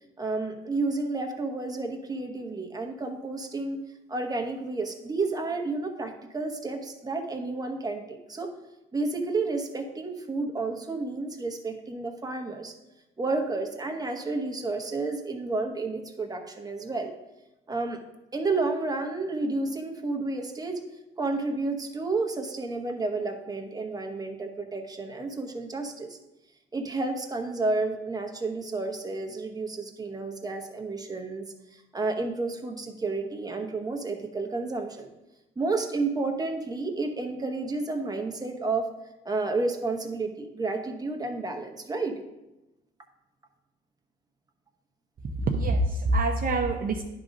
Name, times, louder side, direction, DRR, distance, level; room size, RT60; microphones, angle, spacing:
voice 1, 0.2-3.8 4.1-8.5 8.9-12.7 13.2-17.1 17.7-18.0 18.3-20.8 21.2-26.2 26.7-31.4 31.7-35.1 35.6-38.9 39.2-42.2, right 3 dB, 20° right, 4 dB, 1.1 m, -31 dB
voice 2, 45.2-47.0, right 2 dB, 45° right, 2 dB, 0.7 m, -25 dB
10.5 x 3.7 x 5.2 m, 0.98 s
cardioid pair, 90°, 20 cm